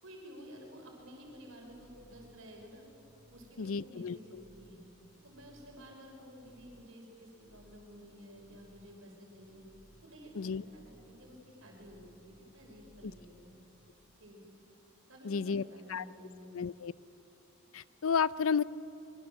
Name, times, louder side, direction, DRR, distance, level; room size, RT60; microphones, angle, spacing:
voice 1, 0.0-2.9 3.3-4.9 5.2-9.6 10.0-13.5 14.2-14.4 15.1-16.5, equal, 70° right, 0 dB, 5.7 m, -52 dB
sound 1, 1.2-13.9, equal, 25° right, 3.9 m, -63 dB
voice 2, 3.6-4.4 10.4-10.6 15.2-15.6 15.9-16.0 16.5-16.9 17.7-18.6, left 6 dB, 75° left, 18 dB, 0.5 m, -32 dB
25.0 x 23.0 x 7.7 m, 3.0 s
head